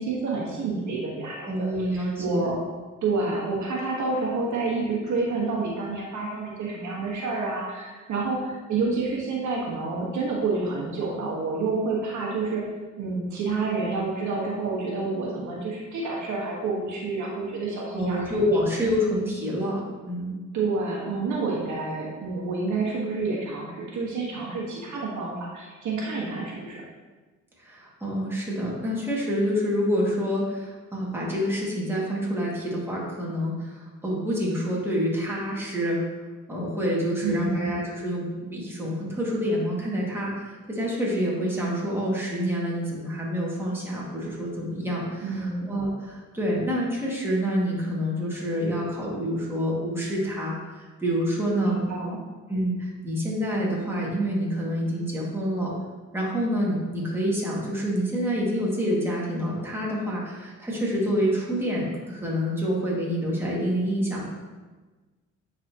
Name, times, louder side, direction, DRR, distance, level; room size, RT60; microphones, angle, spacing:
voice 1, 0.0-2.5 3.0-12.7 13.0-18.3 20.5-26.8 37.2-37.7 45.2-45.7 51.6-52.2, right 3 dB, 70° right, -3 dB, 1.4 m, -29 dB
voice 2, 1.4-2.5 17.9-20.4 27.6-36.0 36.5-51.8 52.5-55.7 56.1-64.2, equal, 10° right, -5 dB, 1.9 m, -27 dB
9.2 x 4.1 x 2.9 m, 1.3 s
cardioid pair, 90°, 30 cm